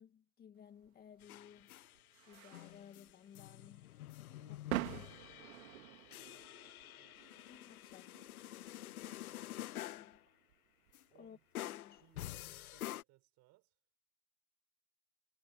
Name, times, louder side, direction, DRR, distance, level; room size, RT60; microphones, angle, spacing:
voice 1, 0.0-1.7 2.2-3.8 4.5-5.0 7.5-8.2 9.7-10.2 11.1-11.4 11.7-12.0, left 8 dB, 20° left, 2.3 m, -58 dB
sound 1, 0.8-12.1, right 15 dB, 75° right, 2.7 m, -49 dB
sound 2, 1.2-2.0 2.3-10.2 10.9-11.0 11.5-13.0, left 14 dB, 90° left, 0.9 m, -48 dB
voice 2, 4.3-7.2 8.8-9.8 11.1-11.4 12.0-13.8, right 20 dB, 40° right, 6.7 m, -69 dB
supercardioid pair, 140°, 42 cm